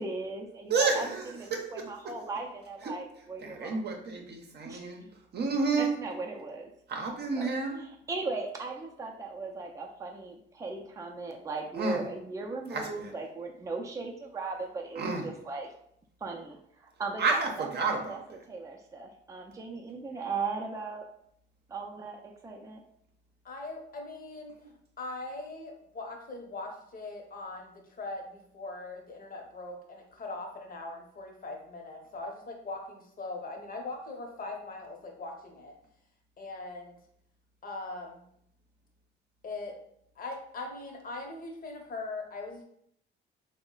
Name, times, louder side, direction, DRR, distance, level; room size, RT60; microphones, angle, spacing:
voice 1, 0.0-1.1 1.4-3.8 4.6-4.9 5.8-6.7 7.4-7.5 7.8-15.7 16.2-17.7 18.1-18.2 18.5-21.1 21.7-22.2 22.4-22.8, right 3 dB, 15° right, 1 dB, 0.5 m, -38 dB
voice 2, 0.7-1.6 3.4-5.0 5.3-5.9 6.9-7.8 11.7-12.0 12.7-13.1 15.0-15.3 17.2-18.4, right 4 dB, 55° right, 1 dB, 0.7 m, -30 dB
voice 3, 23.4-24.7 25.0-35.8 36.4-37.0 37.6-38.3 39.4-39.8 40.2-42.6, left 2 dB, 45° left, 2 dB, 0.9 m, -41 dB
3.0 x 2.1 x 3.8 m, 0.69 s
cardioid pair, 90°, 20 cm